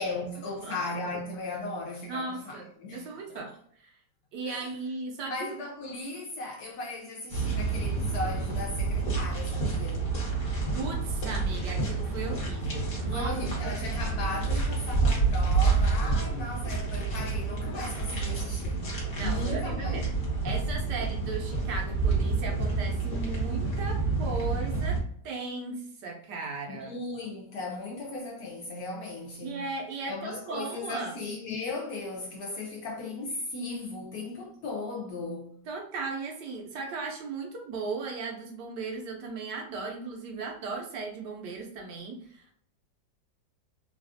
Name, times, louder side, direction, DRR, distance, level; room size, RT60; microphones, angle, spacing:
voice 1, 0.0-3.4 4.5-4.7 5.3-10.2 13.1-20.1 26.7-29.7 30.1-35.6, left 2 dB, 70° left, 0.9 m, -37 dB
voice 2, 2.1-3.5 3.8-3.9 4.3-5.5 10.7-13.4 13.6-14.1 19.2-20.1 20.4-27.0 29.4-31.1 35.7-42.5, right 3 dB, 75° right, 1.2 m, -37 dB
sound 1, 7.3-25.0, right 4 dB, 40° left, 0.8 m, -29 dB
3.2 x 2.3 x 2.5 m
omnidirectional pair, 2.0 m